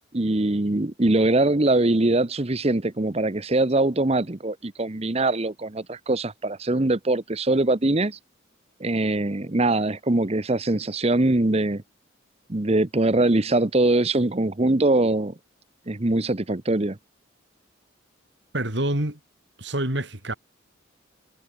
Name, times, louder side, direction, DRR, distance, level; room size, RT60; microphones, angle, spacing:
voice 1, 0.1-8.2 8.8-11.8 12.5-15.3 15.9-17.0, right 2 dB, 30° right, 0.9 m, -22 dB
voice 2, 18.5-19.2 19.6-20.3, right 1 dB, 60° right, 4.3 m, -26 dB
head